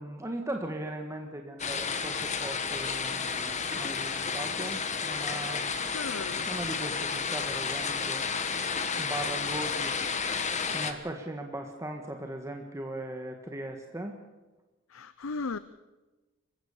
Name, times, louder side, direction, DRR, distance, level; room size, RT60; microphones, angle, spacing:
voice 1, 0.0-6.2 6.5-8.3 9.0-10.4 10.7-14.2, right 1 dB, 15° right, 3 dB, 1.5 m, -39 dB
sound 1, 1.6-10.9, left 5 dB, 35° left, 1.5 m, -31 dB
voice 2, 5.9-6.5 14.9-15.6, left 4 dB, 75° left, 15 dB, 0.7 m, -36 dB
26.5 x 15.5 x 7.2 m, 1.2 s
head